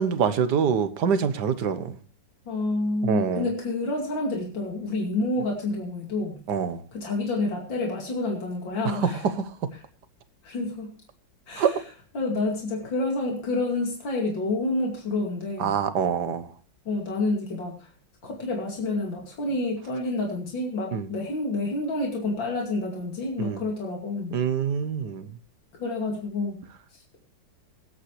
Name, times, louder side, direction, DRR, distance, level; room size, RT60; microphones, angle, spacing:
voice 1, 0.0-2.0 3.0-3.5 6.5-6.8 8.8-9.7 11.6-11.8 15.6-16.5 20.9-21.1 23.4-23.6 24.3-25.3, right 7 dB, 65° right, 1.6 m, -25 dB
voice 2, 2.5-6.4 6.9-9.3 10.4-10.9 11.5-11.7 12.1-15.7 16.9-17.7 18.2-24.4 25.7-26.6, left 2 dB, 85° left, 3.2 m, -28 dB
22.5 x 8.8 x 3.2 m
omnidirectional pair, 2.0 m